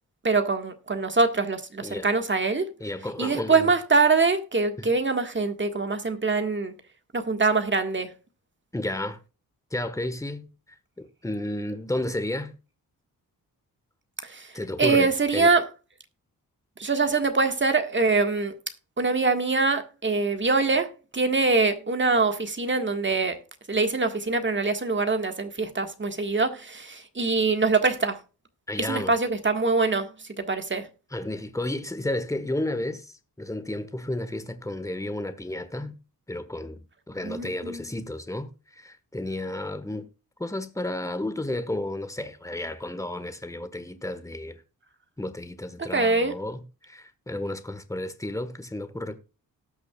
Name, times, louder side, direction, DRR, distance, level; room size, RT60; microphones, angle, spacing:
voice 1, 0.2-2.7 3.2-6.7 7.1-8.1 14.2-14.5 14.8-15.7 16.8-18.5 19.0-23.4 23.7-28.2 28.8-30.1 30.4-30.9 37.2-37.8 45.8-46.4, right 3 dB, 30° right, 1.7 m, -24 dB
voice 2, 2.8-3.7 4.8-4.9 8.7-9.2 9.7-10.5 11.0-12.5 14.5-15.5 28.7-29.1 31.1-36.0 36.3-36.8 37.1-40.1 40.4-44.6 45.2-49.2, left 1 dB, 10° left, 1.4 m, -32 dB
18.5 x 6.2 x 2.4 m
cardioid pair, 70°, 36 cm